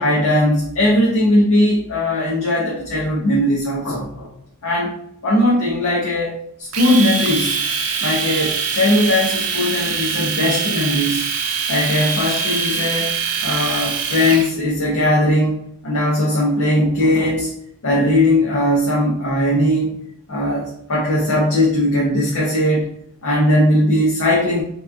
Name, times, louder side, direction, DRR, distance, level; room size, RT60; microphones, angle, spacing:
voice 1, 0.0-4.3 4.6-4.9 5.2-7.6 8.0-11.2 11.7-13.1 13.4-15.6 15.8-17.5 17.8-19.9 20.3-22.8 23.2-24.6, left 1 dB, 70° left, -4 dB, 0.7 m, -18 dB
Domestic sounds home sounds, 6.7-14.5, right 5 dB, 80° right, 0.5 m, -23 dB
3.5 x 2.9 x 2.3 m, 0.72 s
head